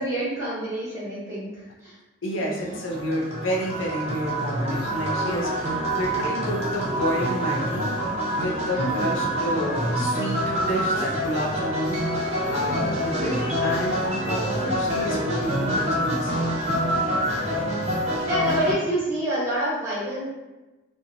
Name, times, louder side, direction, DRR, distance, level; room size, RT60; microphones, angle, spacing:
voice 1, 0.0-2.0 2.4-2.8 8.7-9.0 12.6-12.9 17.2-17.6 18.3-20.2, right 1 dB, 15° right, -9 dB, 0.9 m, -28 dB
voice 2, 2.2-7.9 8.3-16.6, equal, 85° left, -2 dB, 0.6 m, -30 dB
sound 1, 2.5-18.7, equal, 35° right, 0.5 m, -26 dB
2.8 x 2.1 x 2.4 m, 1.1 s
head